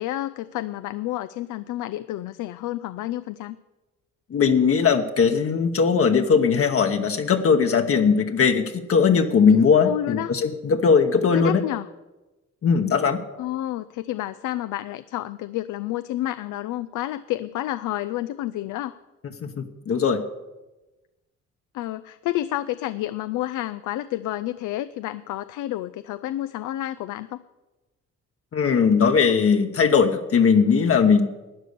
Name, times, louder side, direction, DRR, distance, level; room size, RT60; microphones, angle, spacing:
voice 1, 0.0-3.6 9.4-10.3 11.3-11.9 13.4-19.0 21.7-27.4, left 14 dB, 85° left, 12 dB, 0.5 m, -30 dB
voice 2, 4.3-11.6 12.6-13.2 19.4-20.2 28.5-31.3, left 6 dB, 50° left, 5 dB, 1.0 m, -19 dB
12.0 x 9.3 x 6.7 m, 1.1 s
cardioid pair, 90°, 30 cm